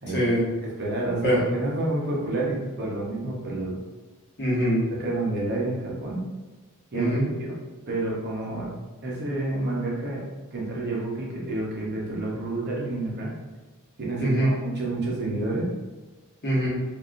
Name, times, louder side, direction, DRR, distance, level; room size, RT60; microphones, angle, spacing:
voice 1, 0.1-0.5 1.2-1.4 4.4-4.9 6.9-7.3 14.2-14.5 16.4-16.7, equal, 50° left, -7 dB, 1.1 m, -23 dB
voice 2, 0.6-3.8 5.0-6.3 6.9-7.1 7.4-7.6 7.9-8.7 9.0-10.3 10.5-13.4 14.0-15.7, right 2 dB, 50° right, -3 dB, 0.7 m, -29 dB
3.2 x 2.5 x 2.5 m, 1.2 s
head